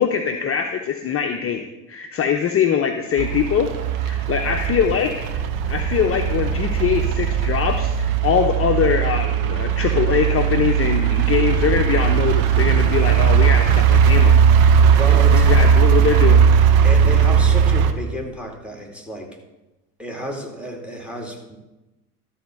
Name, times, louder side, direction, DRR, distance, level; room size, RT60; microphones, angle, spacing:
voice 1, 0.0-1.6 1.9-3.7 4.0-14.4 15.3-16.4, left 8 dB, 30° left, 4 dB, 0.9 m, -22 dB
sound 1, 3.2-17.9, right 7 dB, 50° right, 1.0 m, -17 dB
voice 2, 15.0-15.5 16.8-19.4 20.0-21.6, equal, ahead, 2 dB, 2.5 m, -31 dB
12.5 x 4.6 x 7.6 m, 1.0 s
hypercardioid pair, 70°, 46 cm